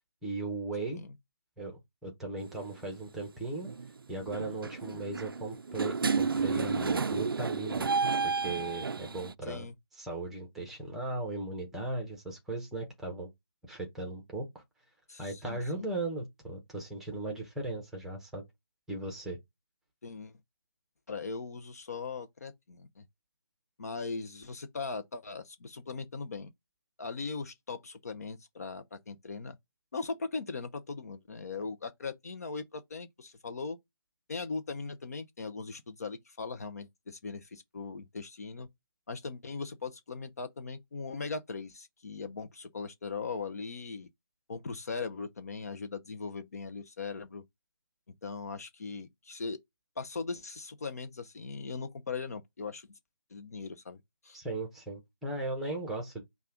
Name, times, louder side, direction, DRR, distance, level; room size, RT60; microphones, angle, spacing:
voice 1, 0.2-1.0 1.6-3.7 4.1-7.9 8.2-9.7 9.9-13.3 13.7-14.6 15.2-18.4 18.9-19.4 54.3-56.2, right 2 dB, ahead, 0.9 m, -37 dB
sound 1, 2.4-2.7 3.6-3.9 4.2-9.3, right 5 dB, 70° right, 0.4 m, -31 dB
voice 2, 9.4-9.7 15.1-15.8 20.0-20.3 21.1-23.1 23.8-26.5 27.0-29.6 29.9-33.8 34.3-38.7 39.1-44.1 44.5-47.4 48.2-49.6 50.0-52.9 53.3-54.4, left 4 dB, 40° left, 0.6 m, -39 dB
5.4 x 2.3 x 3.8 m
figure-of-eight pair, 155°, 13 cm